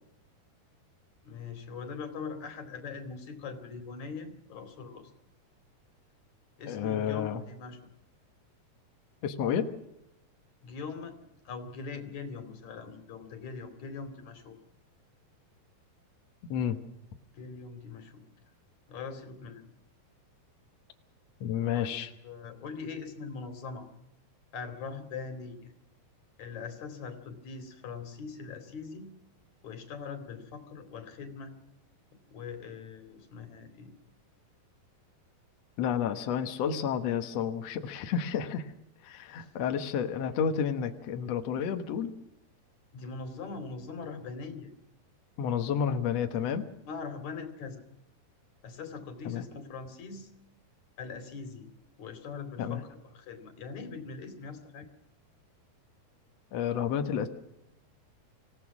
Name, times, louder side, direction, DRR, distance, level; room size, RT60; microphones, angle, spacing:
voice 1, 1.2-5.1 6.6-7.8 10.6-11.2 11.5-14.6 17.3-18.3 18.9-19.7 21.8-23.9 24.5-25.7 26.4-29.1 29.6-31.5 32.3-33.9 39.4-39.7 42.9-44.7 46.9-47.8 48.6-50.3 51.0-51.7 52.0-54.9, left 5 dB, 50° left, 8 dB, 3.7 m, -41 dB
voice 2, 6.7-7.4 9.2-9.7 16.5-16.8 21.4-22.1 35.8-38.7 39.0-42.1 45.4-46.6 49.2-49.4 52.6-52.8 56.5-57.3, left 8 dB, 70° left, 7 dB, 1.5 m, -30 dB
26.0 x 17.0 x 6.0 m, 0.83 s
omnidirectional pair, 4.7 m